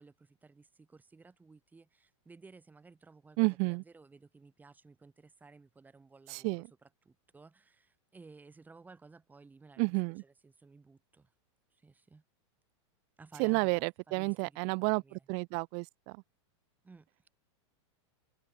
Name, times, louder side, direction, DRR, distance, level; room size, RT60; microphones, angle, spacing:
voice 1, 0.0-11.3 11.7-12.2 13.2-15.3 16.8-17.3, right 4 dB, 10° right, 7.7 m, -57 dB
voice 2, 3.4-3.8 6.3-6.7 9.8-10.2 13.4-16.2, right 40 dB or more, 45° right, 0.7 m, -31 dB
supercardioid pair, 140°, 16 cm